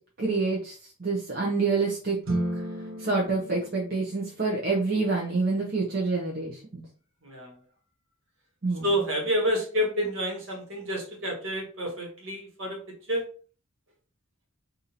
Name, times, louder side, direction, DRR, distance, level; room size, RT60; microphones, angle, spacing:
voice 1, 0.2-2.2 2.5-2.6 3.0-6.8 8.6-9.0, right 3 dB, 45° right, -3 dB, 0.7 m, -27 dB
sound 1, 2.2-4.6, right 1 dB, 80° right, 1.0 m, -33 dB
voice 2, 7.2-7.5 8.8-13.2, equal, 60° right, 1 dB, 1.4 m, -29 dB
2.8 x 2.6 x 4.0 m, 0.39 s
head